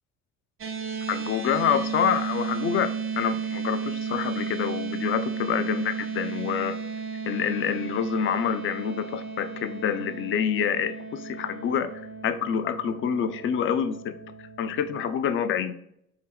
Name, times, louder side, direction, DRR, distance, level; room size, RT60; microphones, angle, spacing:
sound 1, 0.6-15.0, right 6 dB, 30° right, 0.7 m, -34 dB
voice 1, 1.1-6.8 7.3-11.9 12.2-14.1 14.6-15.8, left 8 dB, 30° left, 11 dB, 0.4 m, -27 dB
4.3 x 2.8 x 3.3 m, 0.74 s
figure-of-eight pair, 50°, 44 cm